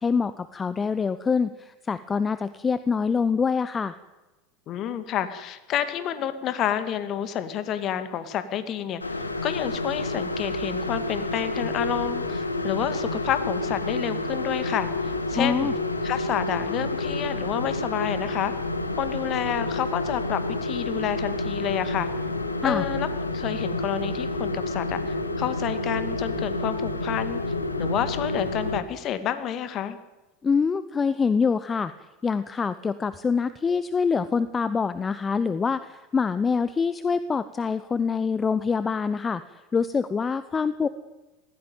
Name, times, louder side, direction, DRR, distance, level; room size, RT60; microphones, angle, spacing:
voice 1, 0.0-4.0 15.4-15.7 22.6-22.8 30.4-31.9 32.2-40.9, left 5 dB, 20° left, 14 dB, 0.9 m, -25 dB
voice 2, 4.7-15.7 16.0-18.5 19.0-22.1 22.6-27.4 27.8-30.0, left 10 dB, 40° left, 12 dB, 2.4 m, -29 dB
sound 1, 9.0-28.8, left 2 dB, 85° left, 1.7 m, -29 dB
20.0 x 15.5 x 9.3 m, 1.1 s
figure-of-eight pair, 75°, 0 cm